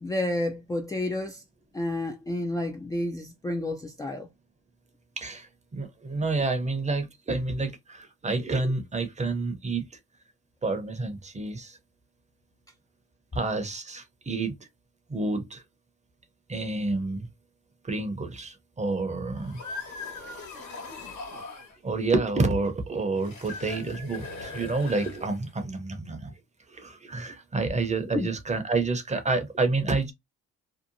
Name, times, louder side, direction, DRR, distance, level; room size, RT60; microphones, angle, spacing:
voice 1, 0.0-1.4 1.7-4.3 28.1-28.3, left 1 dB, 10° left, 0.4 m, -30 dB
voice 2, 5.2-9.8 10.6-11.8 13.3-14.6 15.1-15.6 16.5-17.3 17.8-19.6 21.8-26.3 26.7-30.1, right 3 dB, 25° right, 0.7 m, -29 dB
sound 1, 19.3-21.8 23.2-25.6, left 3 dB, 75° left, 1.3 m, -40 dB
2.8 x 2.1 x 2.6 m
cardioid pair, 90°, 30 cm